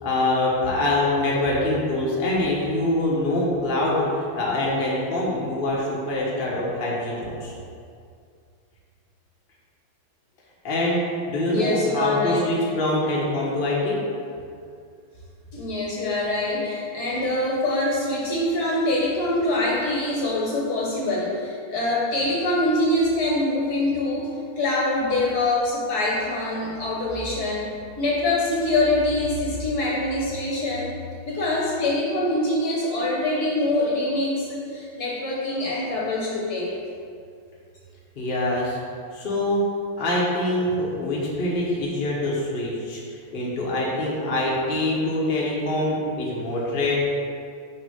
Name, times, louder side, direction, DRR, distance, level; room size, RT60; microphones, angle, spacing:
voice 1, 0.0-7.5 10.6-11.0 11.3-14.0 38.2-38.8 39.1-39.6 40.0-43.0 43.3-47.0, left 1 dB, 35° left, -5 dB, 0.9 m, -24 dB
voice 2, 11.5-12.5 15.5-24.3 24.6-27.7 28.0-30.9 31.2-36.7, left 2 dB, 55° left, -4 dB, 1.3 m, -24 dB
6.1 x 3.3 x 5.5 m, 2.3 s
omnidirectional pair, 2.3 m